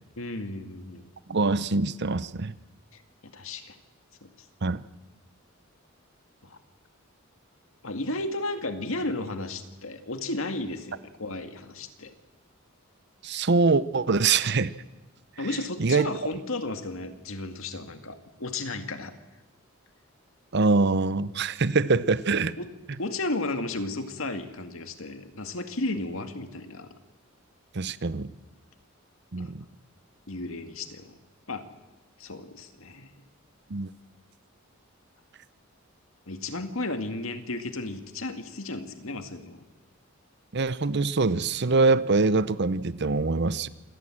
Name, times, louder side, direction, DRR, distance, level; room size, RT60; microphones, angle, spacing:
voice 1, 0.2-1.1 3.3-3.8 4.2-4.3 6.4-6.6 7.8-12.1 15.4-19.1 22.6-22.7 23.0-26.9 29.4-29.5 30.3-31.1 31.5-31.7 32.2-33.1 36.3-39.6, left 2 dB, 70° left, 8 dB, 2.1 m, -33 dB
voice 2, 1.3-2.5 4.6-4.8 13.2-14.7 15.8-16.1 20.5-22.6 27.7-28.3 29.3-29.6 33.7-33.9 40.5-43.7, right 3 dB, 50° right, 16 dB, 0.8 m, -24 dB
27.0 x 18.5 x 7.7 m, 1.1 s
head